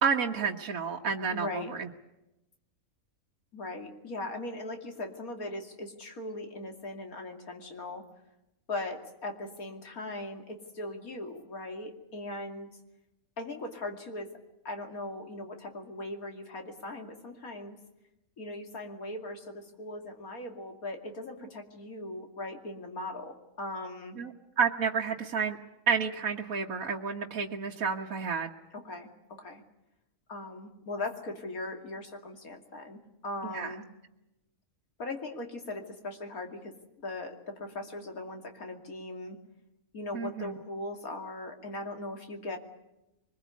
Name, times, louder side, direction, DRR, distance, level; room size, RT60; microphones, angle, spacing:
voice 1, 0.0-1.9 24.2-24.3 24.6-25.6 25.9-28.5 33.5-33.7 40.1-40.6, right 6 dB, 75° right, 0 dB, 1.8 m, -30 dB
voice 2, 1.3-1.7 3.5-8.1 8.7-12.7 13.4-14.3 14.6-17.8 18.4-24.2 28.7-29.6 30.3-33.8 35.0-36.7 37.0-39.4 39.9-42.6, left 2 dB, 80° left, 4 dB, 3.1 m, -39 dB
24.0 x 21.0 x 8.3 m, 0.92 s
omnidirectional pair, 1.5 m